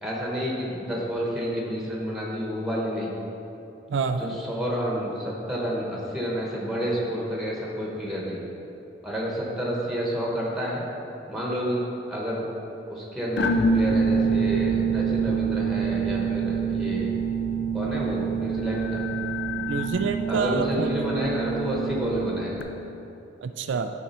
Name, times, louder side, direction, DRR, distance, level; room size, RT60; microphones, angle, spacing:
voice 1, 0.0-3.1 4.2-8.4 9.0-10.8 11.3-11.8 12.1-12.5 12.9-17.1 17.7-19.0 20.3-22.6, equal, ahead, -4 dB, 1.1 m, -29 dB
voice 2, 3.9-4.4 19.7-20.9 23.4-23.9, right 5 dB, 80° right, 8 dB, 0.4 m, -27 dB
sound 1, 13.4-22.6, right 5 dB, 70° left, 0.5 m, -26 dB
9.4 x 4.8 x 4.3 m, 2.9 s
head